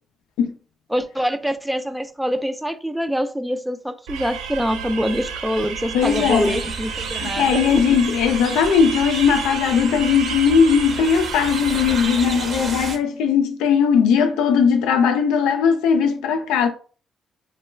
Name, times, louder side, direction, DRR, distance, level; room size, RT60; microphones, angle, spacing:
voice 1, 0.9-7.8, equal, 5° right, 0.3 m, -25 dB
sound 1, 4.1-12.6, right 6 dB, 90° right, 0.4 m, -31 dB
voice 2, 5.9-6.6 7.2-16.7, left 6 dB, 90° left, 0.4 m, -18 dB
sound 2, 6.0-13.0, right 4 dB, 50° right, 0.7 m, -33 dB
2.3 x 2.2 x 3.1 m
cardioid pair, 75°, 0 cm